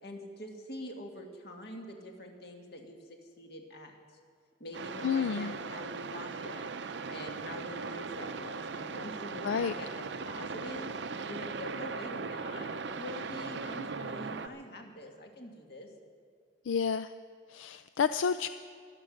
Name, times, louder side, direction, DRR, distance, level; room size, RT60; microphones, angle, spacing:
voice 1, 0.0-4.0 4.6-6.7 7.1-10.9 11.3-15.9, left 1 dB, 55° left, 2 dB, 2.0 m, -45 dB
sound 1, 4.7-14.5, right 4 dB, 60° right, 0.6 m, -39 dB
voice 2, 5.0-5.5 9.4-9.7 16.7-17.1 17.5-18.5, left 6 dB, 80° left, 12 dB, 0.4 m, -30 dB
24.5 x 8.4 x 6.5 m, 2.2 s
head